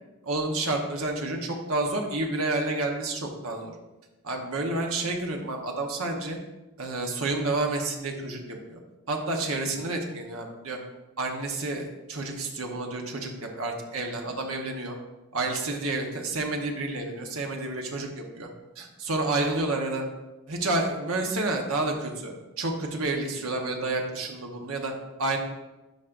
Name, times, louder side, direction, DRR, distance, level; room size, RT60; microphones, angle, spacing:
voice 1, 0.2-3.7 4.2-6.4 6.8-8.8 9.1-10.8 11.2-15.0 15.3-18.5 18.8-20.0 20.5-24.9 25.2-25.4, right 2 dB, 75° right, 2 dB, 1.1 m, -30 dB
10.5 x 5.1 x 2.6 m, 1.1 s
head